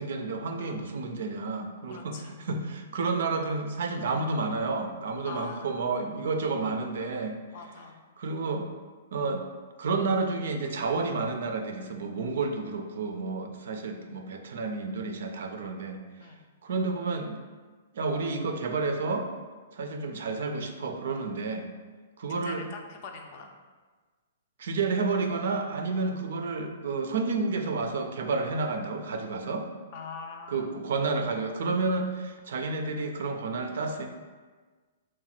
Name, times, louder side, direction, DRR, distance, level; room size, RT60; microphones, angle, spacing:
voice 1, 0.0-7.4 8.2-8.7 9.1-9.4 9.8-16.0 16.6-17.4 17.9-19.3 19.7-21.7 22.2-22.6 24.6-29.7 30.5-34.1, right 3 dB, 65° right, 5 dB, 0.4 m, -30 dB
voice 2, 1.9-2.3 5.2-5.8 7.5-8.0 16.2-16.4 22.4-23.5 29.9-30.7, left 5 dB, 45° left, 3 dB, 0.4 m, -43 dB
3.0 x 2.2 x 4.2 m, 1.4 s
hypercardioid pair, 120°, 0 cm